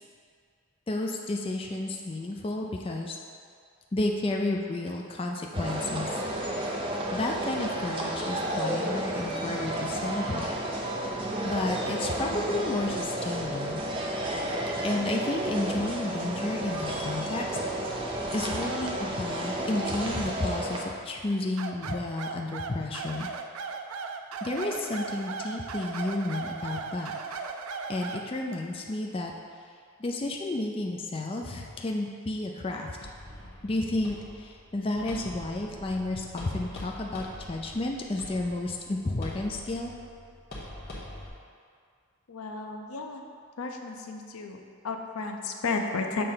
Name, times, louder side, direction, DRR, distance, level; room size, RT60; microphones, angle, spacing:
voice 1, 0.9-3.2 3.9-6.2 7.1-10.5 11.4-13.8 14.8-17.6 18.3-23.3 24.4-27.1 27.9-29.3 30.0-33.0 33.6-39.9, left 2 dB, 25° left, 1 dB, 0.4 m, -31 dB
sound 1, 5.5-20.8, right 1 dB, 25° right, 0.6 m, -32 dB
sound 2, 21.6-28.3, right 4 dB, 85° right, 0.4 m, -37 dB
sound 3, 33.0-41.3, left 1 dB, 45° left, 1.3 m, -44 dB
voice 2, 42.3-43.2 43.6-44.6 44.8-46.3, left 3 dB, 90° left, 3 dB, 0.6 m, -33 dB
6.8 x 3.3 x 5.6 m, 2.2 s
head